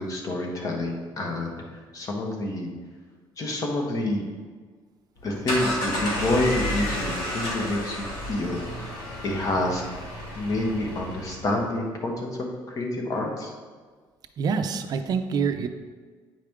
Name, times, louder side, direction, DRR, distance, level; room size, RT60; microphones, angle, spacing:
voice 1, 0.0-1.6 1.9-2.7 3.4-4.3 5.2-8.6 9.2-9.8 10.3-13.5, left 1 dB, 40° left, 0 dB, 1.3 m, -28 dB
sound 1, 5.2-11.5, left 1 dB, 80° left, 2.2 m, -31 dB
voice 2, 14.4-15.7, right 6 dB, 50° right, 7 dB, 0.5 m, -26 dB
9.1 x 4.8 x 3.6 m, 1.5 s
cardioid pair, 140°, 9 cm